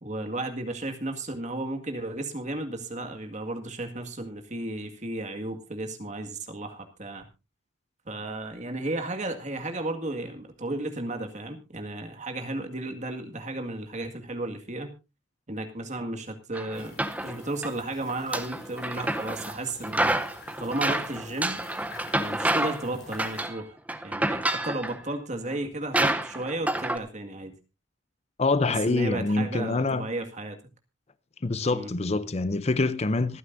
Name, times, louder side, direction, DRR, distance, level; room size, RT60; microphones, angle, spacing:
voice 1, 0.0-7.3 8.1-14.9 15.5-20.2 20.6-21.6 22.1-23.8 24.0-27.5 28.7-30.6 31.7-31.9, right 2 dB, 35° right, 1.9 m, -34 dB
sound 1, 16.5-17.7 18.1-19.6 19.8-22.9 23.1-23.6 23.9-25.0 25.5-25.6 25.9-27.0, right 1 dB, 5° right, 0.8 m, -28 dB
sound 2, 16.7-23.5, left 3 dB, 55° left, 5.8 m, -49 dB
voice 2, 28.4-30.1 31.4-33.4, left 3 dB, 30° left, 0.6 m, -25 dB
26.0 x 9.7 x 2.7 m
head